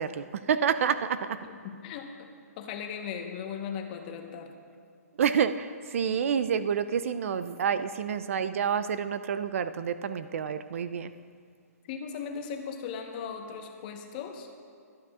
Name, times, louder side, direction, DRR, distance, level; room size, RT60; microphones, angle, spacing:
voice 1, 0.0-1.4 5.2-11.1, right 7 dB, 55° right, 13 dB, 0.5 m, -28 dB
voice 2, 1.4-4.5 11.9-14.5, left 7 dB, 35° left, 4 dB, 1.1 m, -38 dB
23.5 x 9.3 x 2.4 m, 2.3 s
hypercardioid pair, 155°, 9 cm